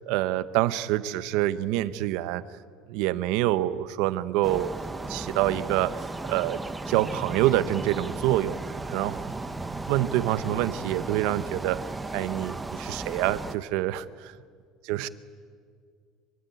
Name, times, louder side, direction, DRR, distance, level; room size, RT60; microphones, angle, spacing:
voice 1, 0.1-2.4 2.9-4.7 5.1-6.0 6.3-6.6 6.9-8.6 8.9-9.2 9.9-11.8 12.1-14.3 14.8-15.1, right 14 dB, 65° right, 15 dB, 1.0 m, -26 dB
sound 1, 4.4-13.6, right 2 dB, 10° right, 0.9 m, -35 dB
25.5 x 24.0 x 9.5 m, 2.1 s
cardioid pair, 175°, 0 cm